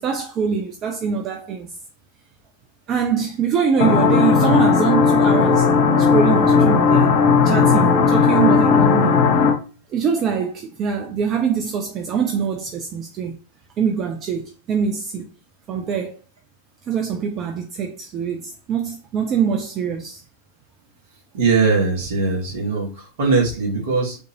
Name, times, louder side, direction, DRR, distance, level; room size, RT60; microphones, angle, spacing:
voice 1, 0.0-1.7 2.9-5.7 6.0-7.2 7.4-9.3 9.9-13.3 13.8-15.3 15.7-16.2 16.9-20.2, right 6 dB, 30° right, 0.4 m, -23 dB
sound 1, 3.8-9.5, left 5 dB, 50° left, 0.9 m, -16 dB
voice 2, 21.3-24.2, right 4 dB, 55° right, 1.4 m, -20 dB
3.6 x 2.5 x 2.8 m
figure-of-eight pair, 90°, 0 cm